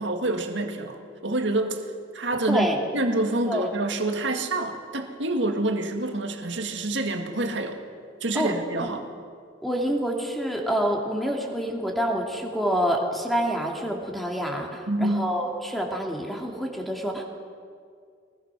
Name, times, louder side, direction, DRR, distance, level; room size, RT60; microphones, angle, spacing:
voice 1, 0.0-1.9 2.1-2.7 2.9-7.8 8.2-9.0 14.9-15.3, right 2 dB, 70° right, 4 dB, 2.0 m, -27 dB
voice 2, 2.5-2.8 3.5-3.7 8.3-8.5 8.8-9.0 9.6-17.2, equal, ahead, 0 dB, 2.5 m, -27 dB
23.0 x 20.5 x 6.2 m, 2.2 s
head